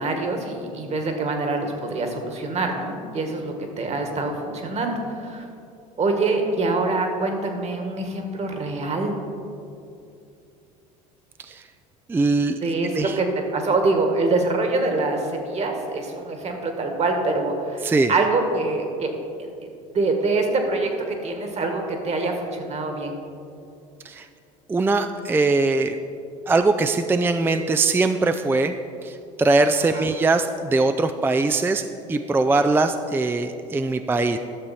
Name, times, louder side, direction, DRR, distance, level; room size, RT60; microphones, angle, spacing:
voice 1, 0.0-5.5 6.0-9.1 12.6-12.9 13.2-13.3 13.5-19.5 19.9-23.2 29.9-30.0, right 3 dB, 35° right, 4 dB, 1.7 m, -25 dB
voice 2, 12.1-12.6 12.9-13.2 17.8-18.1 24.0-24.3 24.7-26.0 26.5-28.7 29.0-34.4, right 3 dB, 10° right, 8 dB, 0.4 m, -21 dB
12.0 x 6.8 x 4.4 m, 2.6 s
hypercardioid pair, 75°, 18 cm